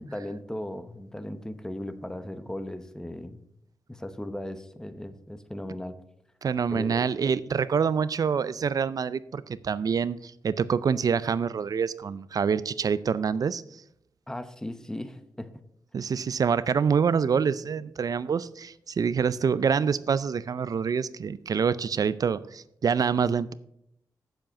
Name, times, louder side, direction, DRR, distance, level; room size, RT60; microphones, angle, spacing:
voice 1, 0.0-3.4 3.9-6.0 6.7-7.0 14.3-15.5, left 1 dB, 10° left, 11 dB, 0.9 m, -37 dB
voice 2, 6.4-13.6 15.9-23.5, right 6 dB, 60° right, 17 dB, 0.4 m, -26 dB
7.6 x 7.3 x 5.8 m, 0.76 s
cardioid pair, 75°, 7 cm